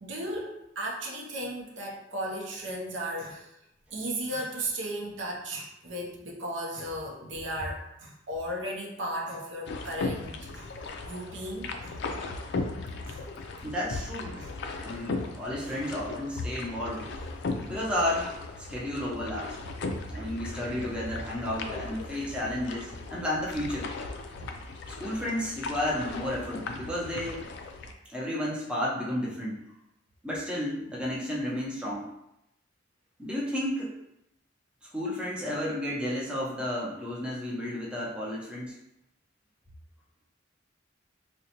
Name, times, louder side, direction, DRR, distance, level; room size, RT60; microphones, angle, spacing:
voice 1, 0.0-3.5 3.9-10.7 11.0-12.0 13.1-13.2 14.4-14.5 15.7-15.8, right 1 dB, 70° right, -1 dB, 0.6 m, -35 dB
sound 1, 9.7-27.9, left 3 dB, 65° left, 0.3 m, -37 dB
voice 2, 13.6-14.4 14.8-17.1 17.7-19.6 19.9-23.9 24.9-27.5 28.1-29.6 30.2-32.1 33.2-33.9 34.9-38.8, left 1 dB, 5° right, -5 dB, 0.6 m, -32 dB
3.8 x 2.1 x 2.8 m, 0.83 s
head